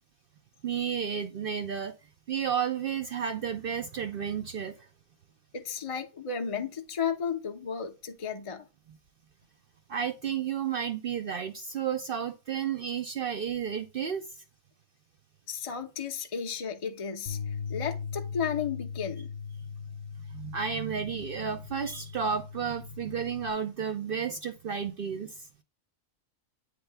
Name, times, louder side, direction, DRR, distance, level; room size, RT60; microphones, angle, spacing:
voice 1, 0.6-1.9 2.3-4.7 9.9-14.4 20.3-25.5, right 7 dB, 60° right, 0.6 m, -32 dB
voice 2, 5.5-8.6 15.5-19.3, left 7 dB, 40° left, 0.5 m, -34 dB
Bass guitar, 17.3-23.5, left 6 dB, 55° left, 1.1 m, -39 dB
8.7 x 3.4 x 3.3 m
omnidirectional pair, 1.4 m